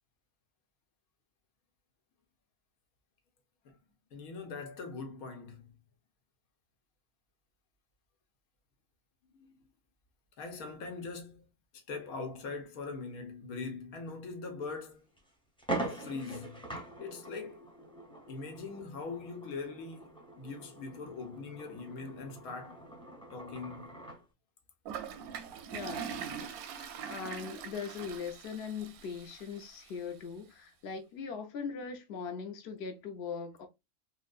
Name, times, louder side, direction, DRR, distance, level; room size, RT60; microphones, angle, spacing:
voice 1, 4.1-5.7 9.3-9.5 10.4-11.5 11.9-15.1 15.8-16.6 17.0-17.6 18.3-22.8 23.3-24.0 26.5-26.7, left 4 dB, 85° left, 1.3 m, -42 dB
sound 1, 14.6-14.7 15.2-15.3 15.6-24.2, right 2 dB, 5° left, 0.5 m, -43 dB
Toilet flush, 24.9-29.9, right 7 dB, 90° right, 1.1 m, -42 dB
voice 2, 25.7-26.2 27.1-33.7, left 6 dB, 55° left, 0.8 m, -40 dB
4.4 x 2.2 x 2.4 m
omnidirectional pair, 1.5 m